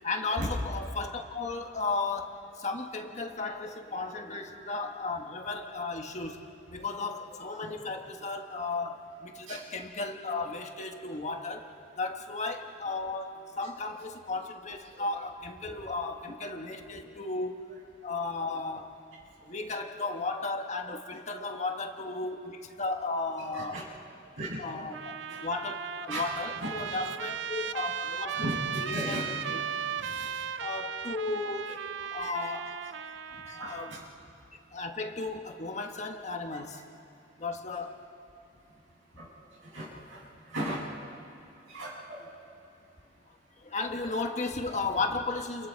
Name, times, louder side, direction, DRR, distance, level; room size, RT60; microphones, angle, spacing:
voice 1, 0.0-17.6 18.0-18.9 19.4-23.8 24.6-28.5 28.8-29.6 30.6-31.7 32.0-32.9 33.4-33.9 34.7-36.8 37.4-38.0 43.6-45.7, left 3 dB, 35° left, 4 dB, 1.5 m, -35 dB
voice 2, 23.4-23.9 24.4-24.6 25.3-25.4 26.1-26.3 26.6-26.9 28.3-29.5 30.0-30.4 31.7-31.8 33.6-34.0 36.5-36.6 39.2-39.3 39.6-40.2 40.5-40.9 41.7-42.3, right 1 dB, 90° right, -5 dB, 7.9 m, -37 dB
Trumpet, 24.9-34.1, right 7 dB, 65° right, 0.5 m, -36 dB
30.0 x 30.0 x 4.6 m, 2.7 s
head